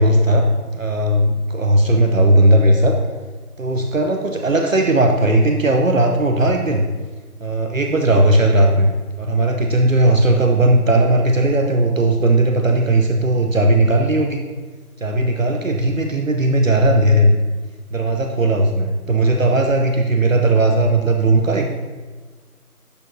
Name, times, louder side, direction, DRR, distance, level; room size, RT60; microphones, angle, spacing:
voice 1, 0.0-3.0 3.6-6.8 7.4-14.4 15.0-17.4 17.9-21.7, right 1 dB, 60° right, 3 dB, 0.8 m, -16 dB
12.0 x 4.7 x 3.1 m, 1.4 s
figure-of-eight pair, 180°, 46 cm